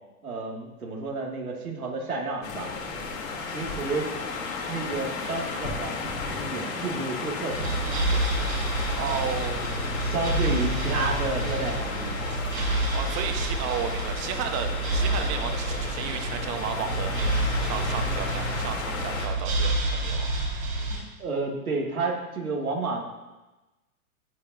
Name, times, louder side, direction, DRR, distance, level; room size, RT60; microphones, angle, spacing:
voice 1, 0.2-2.7 3.5-4.1 4.7-8.2 10.0-12.4 21.2-23.0, right 3 dB, 90° right, -2 dB, 2.9 m, -31 dB
sound 1, 2.4-19.3, left 4 dB, 65° left, 4.0 m, -34 dB
sound 2, 7.5-21.0, right 1 dB, 75° right, 4.3 m, -28 dB
voice 2, 8.9-9.7 12.9-17.2 17.6-20.3, right 8 dB, 35° right, 5 dB, 1.5 m, -33 dB
15.0 x 10.5 x 3.0 m, 1.1 s
hypercardioid pair, 110°, 42 cm